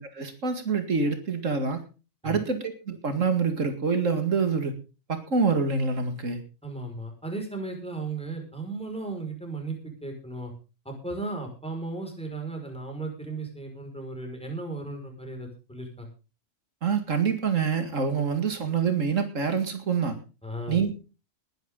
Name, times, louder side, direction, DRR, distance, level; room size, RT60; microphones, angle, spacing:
voice 1, 0.0-1.8 2.2-4.7 5.1-6.4 16.8-20.2 20.7-20.9, right 5 dB, 85° right, 8 dB, 2.4 m, -26 dB
voice 2, 6.6-10.5 10.9-16.1 20.4-20.8, right 2 dB, 5° left, 3 dB, 5.4 m, -35 dB
20.5 x 10.5 x 3.8 m, 0.33 s
omnidirectional pair, 1.3 m